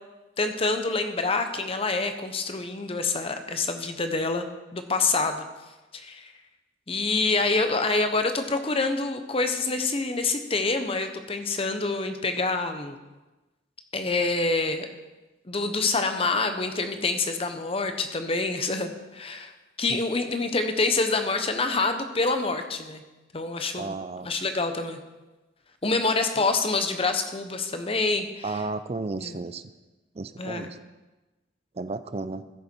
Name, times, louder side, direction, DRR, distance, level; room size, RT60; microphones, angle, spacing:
voice 1, 0.4-4.4 4.7-5.4 5.9-6.3 6.9-13.0 13.9-14.9 15.5-19.5 19.8-23.0 23.3-24.0 24.2-25.0 25.8-28.4 29.2-29.4 30.4-30.7, left 3 dB, 30° left, 7 dB, 0.9 m, -26 dB
voice 2, 23.7-24.3 28.4-29.6 30.1-30.8 31.7-32.5, right 3 dB, 35° right, 12 dB, 0.5 m, -33 dB
15.5 x 6.8 x 4.5 m, 1.1 s
head